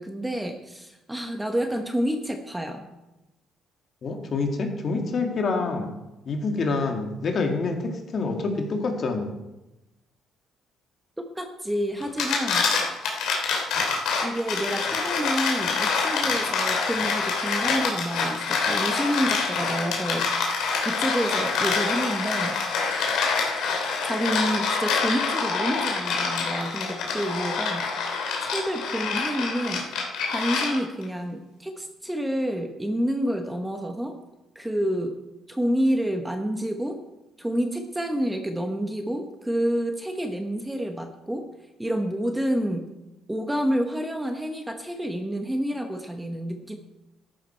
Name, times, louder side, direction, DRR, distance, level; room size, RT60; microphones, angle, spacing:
voice 1, 0.0-2.8 11.2-12.7 14.2-20.4 20.8-22.6 24.0-27.9 28.4-29.9 30.3-34.2 34.5-35.2 35.5-37.0 37.4-41.5 41.8-42.9 43.3-46.8, equal, 5° right, 5 dB, 1.0 m, -28 dB
voice 2, 4.0-5.9 6.3-9.3, left 3 dB, 45° left, 3 dB, 2.1 m, -27 dB
sound 1, 12.0-31.0, left 4 dB, 80° left, 3.1 m, -26 dB
14.0 x 10.5 x 4.5 m, 0.99 s
cardioid pair, 130°, 0 cm